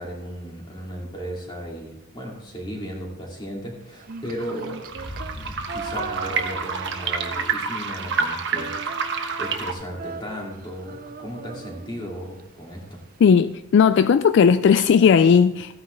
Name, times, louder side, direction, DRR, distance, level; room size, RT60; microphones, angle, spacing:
voice 1, 0.0-4.8 5.3-8.8 9.4-13.0, equal, 20° left, -1 dB, 2.4 m, -35 dB
Female singing, 3.9-7.9 8.1-12.4, right 5 dB, 40° right, 0.4 m, -38 dB
sound 1, 4.1-9.7, right 5 dB, 60° right, 1.0 m, -28 dB
sound 2, 4.8-8.9, left 1 dB, 90° left, 3.1 m, -42 dB
voice 2, 13.2-15.7, left 6 dB, 60° left, 12 dB, 0.3 m, -16 dB
14.5 x 9.3 x 3.2 m, 0.92 s
head